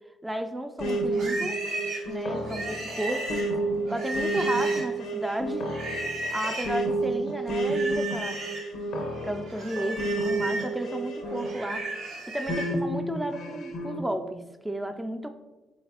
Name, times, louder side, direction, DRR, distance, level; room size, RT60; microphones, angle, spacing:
voice 1, 0.2-1.6 2.1-3.4 3.9-5.6 6.3-8.4 9.2-11.9 12.3-15.3, right 1 dB, 10° right, 7 dB, 0.3 m, -33 dB
sound 1, 0.8-11.9 12.5-14.0, right 2 dB, 70° left, 0.6 m, -30 dB
Livestock farm animals working animals, 0.8-5.1 5.7-6.8 7.5-8.7 9.1-12.7, right 2 dB, 75° right, 1.0 m, -35 dB
3.9 x 3.4 x 2.8 m, 1.2 s
hypercardioid pair, 50°, 0 cm